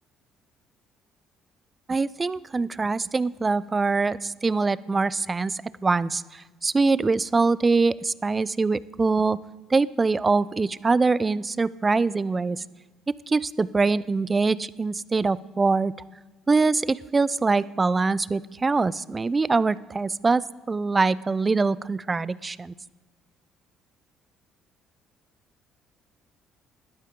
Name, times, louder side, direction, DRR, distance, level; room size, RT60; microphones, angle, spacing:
voice 1, 1.9-9.4 9.7-12.6 13.3-15.9 16.5-22.7, right 4 dB, 30° right, 19 dB, 0.5 m, -23 dB
20.5 x 12.0 x 3.8 m, 1.3 s
hypercardioid pair, 60°, 0 cm